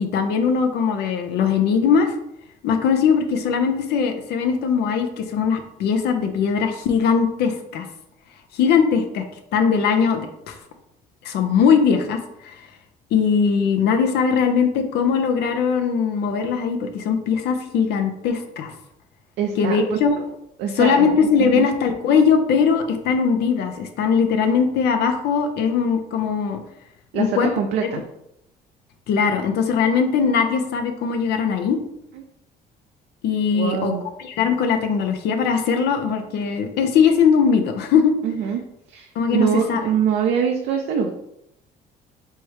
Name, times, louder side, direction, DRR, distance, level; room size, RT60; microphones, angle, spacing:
voice 1, 0.0-2.1 2.6-7.9 8.5-9.2 9.5-10.6 11.2-12.6 13.1-18.7 19.6-20.2 20.8-26.6 27.1-27.5 29.1-31.8 33.2-33.9 34.2-38.1 39.2-39.8, left 6 dB, 75° left, 5 dB, 0.7 m, -20 dB
voice 2, 19.4-20.0 20.6-21.7 27.1-28.0 32.1-32.2 33.5-34.0 38.2-38.6 38.9-41.1, right 7 dB, 80° right, 3 dB, 0.5 m, -24 dB
3.4 x 3.1 x 4.7 m, 0.80 s
cardioid pair, 110°, 17 cm